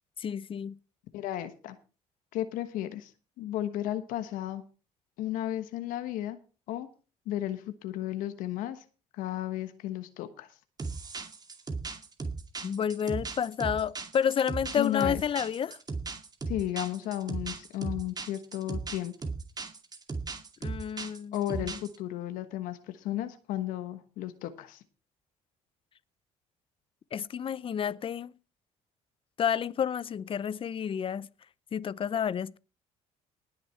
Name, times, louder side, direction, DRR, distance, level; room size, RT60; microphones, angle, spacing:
voice 1, 0.2-0.8 12.6-15.8 20.6-21.8 27.1-28.3 29.4-31.3 31.7-32.6, left 8 dB, 40° left, 0.6 m, -30 dB
voice 2, 1.1-1.8 2.3-3.1 3.4-4.6 5.2-6.4 6.7-6.9 7.3-8.8 9.1-10.5 14.7-15.2 16.5-19.1 21.3-24.8, left 13 dB, 80° left, 1.2 m, -34 dB
sound 1, 10.8-22.0, right 4 dB, 30° right, 2.4 m, -37 dB
19.0 x 6.8 x 4.4 m
supercardioid pair, 85°, 14 cm